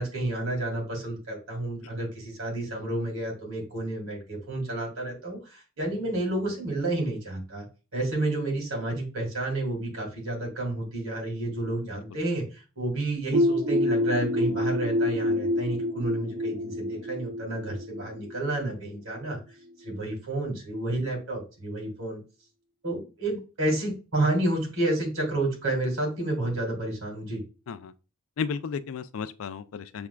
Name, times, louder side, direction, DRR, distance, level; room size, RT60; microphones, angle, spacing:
voice 1, 0.0-7.6 7.9-19.4 19.8-22.2 22.8-27.4, right 2 dB, 90° right, 2.4 m, -30 dB
sound 1, 13.3-18.9, left 1 dB, 50° right, 1.5 m, -27 dB
voice 2, 28.4-30.1, left 6 dB, 85° left, 0.4 m, -33 dB
6.0 x 3.5 x 2.2 m
head